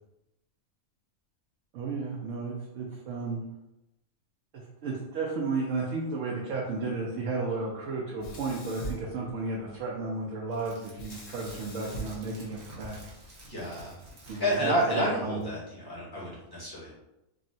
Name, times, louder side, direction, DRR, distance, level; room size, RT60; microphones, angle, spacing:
voice 1, 1.7-3.4 4.5-13.0 14.3-15.5, right 3 dB, 70° right, -3 dB, 0.9 m, -33 dB
Sink (filling or washing), 8.2-9.8 10.9-13.2, right 1 dB, 60° left, 0.9 m, -42 dB
sound 1, 10.5-15.1 15.4-15.5, equal, 45° right, 0.7 m, -49 dB
voice 2, 13.4-14.0 14.3-16.9, right 1 dB, 20° left, -7 dB, 0.9 m, -30 dB
3.6 x 2.0 x 2.6 m, 0.90 s
omnidirectional pair, 1.4 m